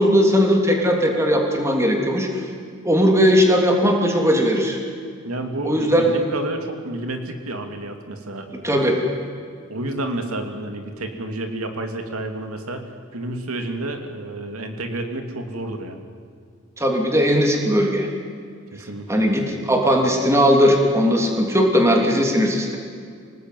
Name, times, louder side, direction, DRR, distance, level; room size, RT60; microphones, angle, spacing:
voice 1, 0.0-2.4 2.8-4.8 5.6-6.1 8.6-9.0 16.8-18.1 19.1-22.8, equal, 15° right, 1 dB, 3.1 m, -18 dB
voice 2, 5.2-8.5 8.8-9.0 9.7-16.0 18.7-19.3, right 1 dB, 90° right, 5 dB, 2.7 m, -30 dB
26.5 x 19.0 x 9.3 m, 2.2 s
head